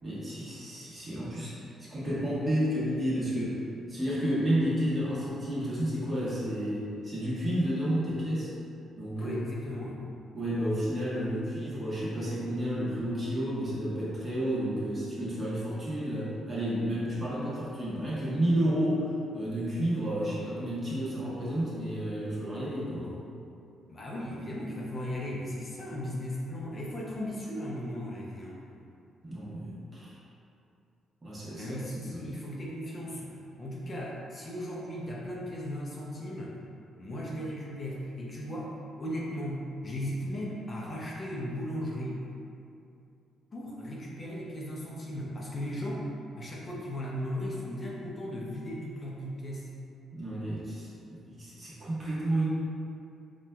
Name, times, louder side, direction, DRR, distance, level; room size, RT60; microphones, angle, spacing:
voice 1, 0.0-3.6 3.9-8.5 8.9-9.4 10.3-23.2 29.2-30.2 31.2-31.7 32.0-32.2 50.1-52.5, equal, 30° right, -9 dB, 1.1 m, -31 dB
voice 2, 9.2-10.1 23.9-28.6 31.5-36.6 37.0-42.2 43.5-46.1 46.4-49.7, equal, 35° left, -4 dB, 0.5 m, -36 dB
4.2 x 2.2 x 2.2 m, 2.6 s
cardioid pair, 90°, 0 cm